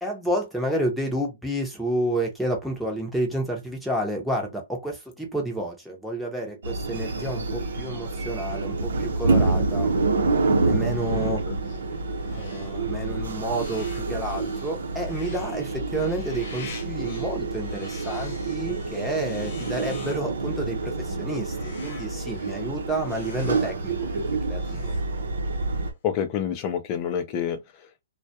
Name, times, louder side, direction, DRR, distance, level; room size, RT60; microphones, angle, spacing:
voice 1, 0.0-9.9 10.7-11.4 12.3-24.9, right 1 dB, ahead, 0.8 m, -30 dB
sound 1, 6.6-25.9, right 3 dB, 85° right, 0.7 m, -27 dB
sound 2, 9.7-25.6, left 5 dB, 55° left, 0.9 m, -48 dB
voice 2, 26.0-28.0, left 8 dB, 30° left, 0.5 m, -28 dB
2.2 x 2.2 x 2.7 m
hypercardioid pair, 150°, 0 cm